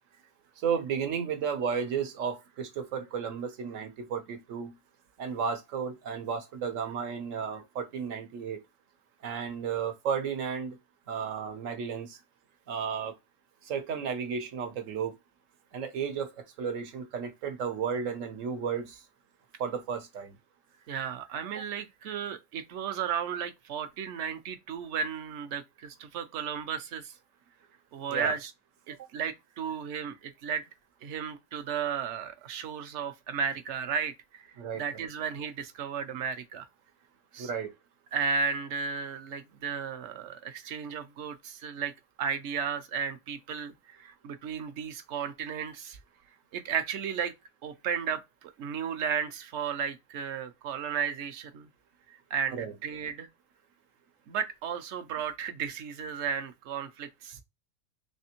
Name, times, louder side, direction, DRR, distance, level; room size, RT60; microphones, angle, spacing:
voice 1, 0.6-4.7 5.2-8.6 9.2-10.8 11.1-12.2 12.7-13.1 13.6-15.2 15.7-16.3 16.6-19.0 19.6-20.4 28.1-28.4 34.6-34.8 37.4-37.7 52.5-52.7, right 6 dB, 85° right, 1.2 m, -33 dB
voice 2, 20.9-27.2 27.9-28.5 28.9-30.7 31.0-34.5 34.7-36.7 37.3-37.5 38.1-41.9 42.2-46.0 46.5-47.3 47.6-51.7 52.1-53.3 54.3-57.4, right 6 dB, 70° right, 0.9 m, -34 dB
3.4 x 3.3 x 2.9 m
omnidirectional pair, 1.3 m